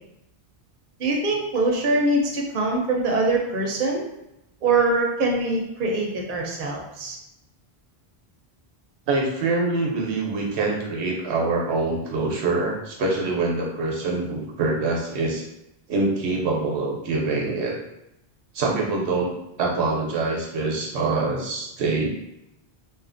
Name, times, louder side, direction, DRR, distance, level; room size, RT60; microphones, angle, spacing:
voice 1, 1.0-4.0 4.6-7.2, right 2 dB, 55° right, -1 dB, 0.7 m, -23 dB
voice 2, 9.1-15.4 15.9-17.7 18.5-19.3 19.6-22.1, right 3 dB, 85° right, -1 dB, 0.9 m, -25 dB
2.6 x 2.4 x 2.5 m, 0.85 s
omnidirectional pair, 1.1 m